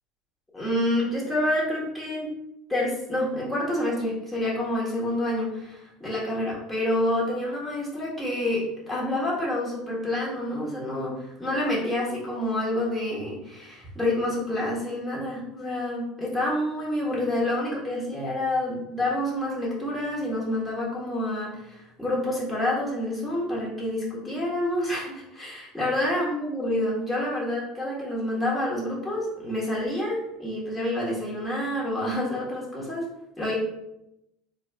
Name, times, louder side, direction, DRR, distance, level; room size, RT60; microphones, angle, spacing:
voice 1, 0.5-2.3 2.7-33.0 33.4-33.5, left 1 dB, 5° left, -6 dB, 1.4 m, -28 dB
3.4 x 2.4 x 3.4 m, 0.85 s
hypercardioid pair, 80°, 0 cm